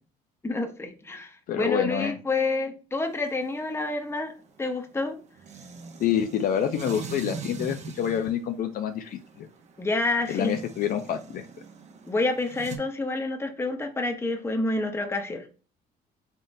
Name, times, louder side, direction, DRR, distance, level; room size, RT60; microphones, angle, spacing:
voice 1, 0.4-4.3 4.6-5.2 9.8-10.6 12.1-15.5, left 2 dB, 15° left, 4 dB, 0.8 m, -28 dB
voice 2, 1.5-2.2 6.0-9.5 10.3-11.5, left 9 dB, 55° left, 7 dB, 0.4 m, -27 dB
sound 1, 3.0-12.8, right 5 dB, 40° right, 0.7 m, -42 dB
3.7 x 3.7 x 2.6 m, 0.35 s
cardioid pair, 110°, 17 cm